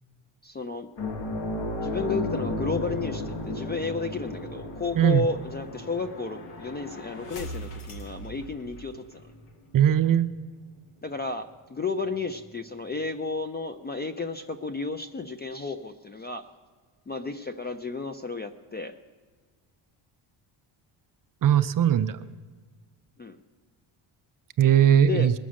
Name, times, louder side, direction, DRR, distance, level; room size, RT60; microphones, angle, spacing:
voice 1, 0.4-0.9 1.8-9.2 11.0-16.5 17.1-18.9 23.2-23.4 25.0-25.3, left 4 dB, 25° left, 9 dB, 0.3 m, -32 dB
sound 1, 1.0-9.9 10.2-10.4 12.5-12.6, left 2 dB, 65° left, 1.8 m, -35 dB
sound 2, 2.6-9.2, equal, 85° left, 1.6 m, -44 dB
voice 2, 9.7-10.3 21.4-22.2 24.6-25.3, right 10 dB, 45° right, 11 dB, 0.5 m, -19 dB
20.5 x 7.2 x 6.2 m, 1.5 s
cardioid pair, 140°, 50 cm